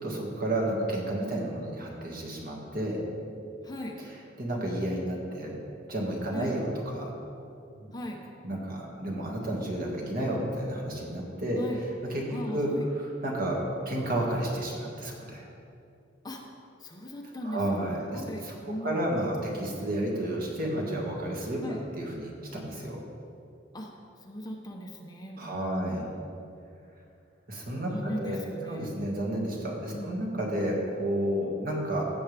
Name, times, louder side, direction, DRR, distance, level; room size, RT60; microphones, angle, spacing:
voice 1, 0.0-3.0 4.4-5.5 5.9-7.1 7.8-7.9 8.4-11.6 12.1-15.5 17.4-18.6 18.8-21.6 21.9-23.0 25.4-26.1 27.5-28.4 28.7-32.0, right 1 dB, 50° right, -2 dB, 1.9 m, -31 dB
voice 2, 3.6-4.0 6.3-6.5 7.9-8.2 11.6-11.8 12.3-12.9 16.2-16.4 16.8-19.0 21.6-21.8 23.7-23.9 24.3-26.0 27.9-28.9 29.9-30.1, equal, 20° left, 1 dB, 0.9 m, -38 dB
16.0 x 7.1 x 3.5 m, 2.6 s
head